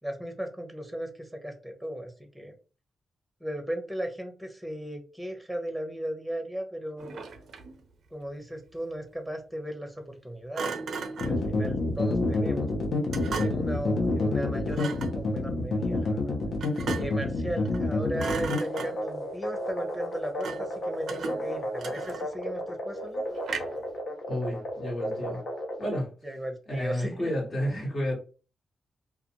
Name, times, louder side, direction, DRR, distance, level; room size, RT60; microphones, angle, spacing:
voice 1, 0.0-2.5 3.4-7.2 8.1-10.8 11.2-12.7 13.4-16.3 16.9-23.4 26.2-27.3, right 1 dB, 5° right, 4 dB, 0.8 m, -36 dB
Thump thud, 7.0-7.8 10.5-11.4 13.1-13.8 14.7-15.2 16.6-17.3 17.6-17.9 18.2-19.2 20.4-20.8 21.1-22.4 23.4-23.9, right 4 dB, 70° right, 0.4 m, -36 dB
sound 1, 11.2-26.0, left 2 dB, 70° left, 0.9 m, -29 dB
voice 2, 24.3-25.4 25.8-26.1 26.7-28.1, equal, 50° left, -2 dB, 1.4 m, -31 dB
2.4 x 2.3 x 2.9 m, 0.35 s
supercardioid pair, 50°, 0 cm